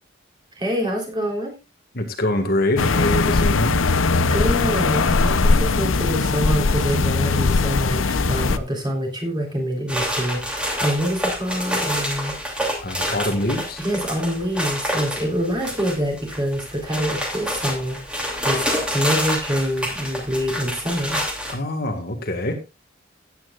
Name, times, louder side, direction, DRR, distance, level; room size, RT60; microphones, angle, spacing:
voice 1, 0.5-1.5 4.3-12.4 13.8-18.7 18.9-21.2, equal, 20° right, 0 dB, 3.8 m, -26 dB
voice 2, 1.9-3.8 12.8-13.8 21.5-22.7, left 1 dB, 50° left, 5 dB, 1.8 m, -24 dB
sound 1, 2.8-8.6, left 3 dB, 85° left, 0.8 m, -20 dB
sound 2, 9.9-21.5, equal, 5° right, 2.8 m, -27 dB
16.0 x 9.2 x 2.5 m, 0.26 s
head